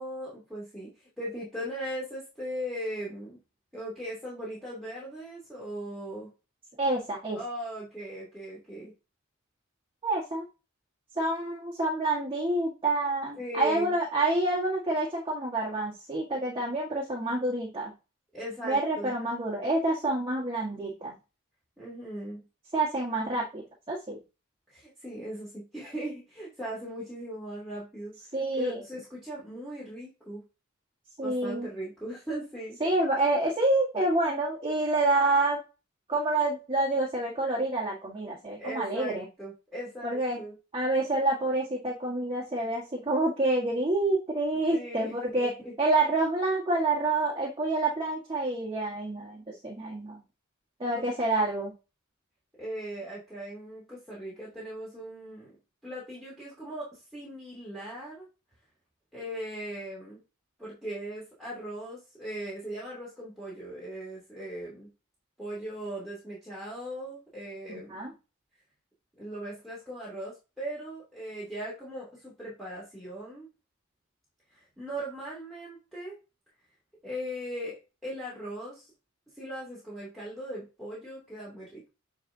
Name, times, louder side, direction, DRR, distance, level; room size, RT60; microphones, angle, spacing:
voice 1, 0.0-3.4 3.7-6.3 7.3-8.9 13.4-14.0 18.3-19.1 21.8-22.4 24.7-28.2 28.6-30.4 31.2-32.8 38.6-40.5 44.7-45.7 52.6-55.5 55.8-58.3 59.1-60.2 60.6-64.9 65.4-68.0 69.2-73.5 74.5-76.2 77.0-78.9 79.3-81.9, right 1 dB, ahead, -7 dB, 2.6 m, -39 dB
voice 2, 6.8-7.4 10.0-10.4 11.1-17.9 18.6-21.1 22.7-24.2 28.3-28.8 31.2-31.7 32.8-35.6 36.1-39.2 40.0-40.4 40.7-45.5 45.8-50.2 50.8-51.7 67.7-68.1, right 2 dB, 25° right, -3 dB, 1.6 m, -28 dB
9.2 x 4.1 x 2.7 m, 0.29 s
head